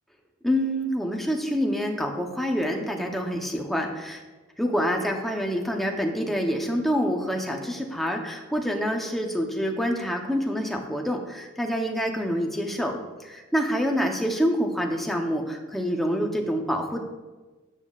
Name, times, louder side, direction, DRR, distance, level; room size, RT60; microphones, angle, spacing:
voice 1, 0.4-4.2 4.6-17.0, equal, ahead, 1 dB, 0.9 m, -27 dB
12.5 x 8.5 x 2.5 m, 1.2 s
head